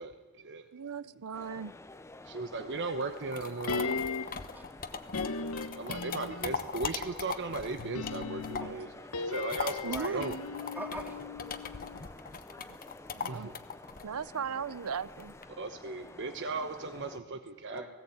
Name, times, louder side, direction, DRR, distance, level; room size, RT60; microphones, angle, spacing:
voice 1, 0.0-0.7 2.2-4.2 5.7-10.4 13.3-13.5 15.5-17.9, right 3 dB, 55° right, 7 dB, 1.0 m, -37 dB
voice 2, 0.7-1.7 9.8-10.3 13.1-13.5 14.0-15.3, right 6 dB, 85° right, 18 dB, 0.6 m, -37 dB
sound 1, 1.3-17.2, left 2 dB, 15° left, 0.6 m, -50 dB
sound 2, 3.0-8.8 9.1-15.4, left 6 dB, 40° left, 1.1 m, -39 dB
sound 3, 3.7-4.5 5.1-6.8 7.8-12.0 12.3-12.4, left 4 dB, 90° left, 1.1 m, -37 dB
voice 3, 4.5-5.3 8.6-8.7 9.9-10.2 10.7-11.2 17.7-17.9, right 1 dB, 10° right, 0 dB, 3.1 m, -43 dB
18.0 x 16.5 x 8.6 m, 1.3 s
head